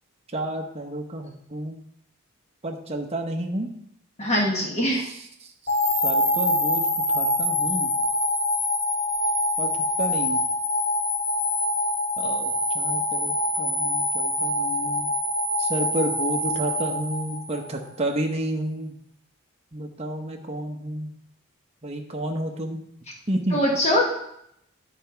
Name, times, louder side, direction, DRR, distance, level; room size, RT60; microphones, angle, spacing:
voice 1, 0.3-1.8 2.6-3.7 4.9-5.8 6.0-7.9 9.6-9.7 10.0-10.4 12.2-15.1 15.6-19.0 19.7-21.1 21.8-22.8 23.3-23.6, right 1 dB, 30° right, 2 dB, 0.8 m, -31 dB
voice 2, 4.2-5.0 23.5-24.1, equal, 30° left, -1 dB, 1.2 m, -22 dB
sound 1, 5.7-17.9, left 1 dB, 45° left, 2.2 m, -25 dB
9.8 x 4.3 x 5.7 m, 0.76 s
head